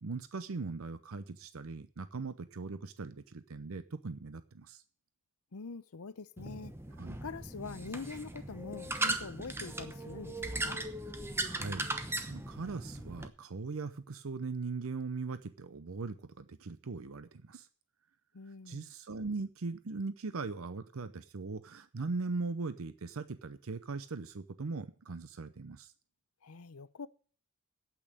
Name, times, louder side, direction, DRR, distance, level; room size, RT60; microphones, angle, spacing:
voice 1, 0.0-4.8 7.0-7.2 11.1-11.2 11.4-11.9 12.3-17.7 18.7-25.9, right 4 dB, 70° right, 0.6 m, -40 dB
voice 2, 5.5-6.7 7.2-10.8 18.3-18.9 26.4-27.1, left 4 dB, 85° left, 0.7 m, -44 dB
sound 1, 6.4-13.3, right 2 dB, 10° right, 0.9 m, -38 dB
8.7 x 8.7 x 8.7 m
head